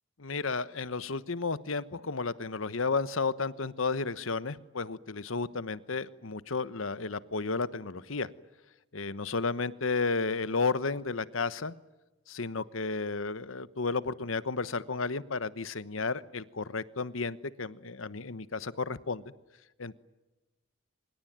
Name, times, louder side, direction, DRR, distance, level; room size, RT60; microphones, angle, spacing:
voice 1, 0.2-8.3 8.9-11.7 12.3-19.2 19.8-20.0, left 4 dB, 90° left, 16 dB, 1.1 m, -32 dB
25.5 x 22.0 x 9.3 m, 1.1 s
head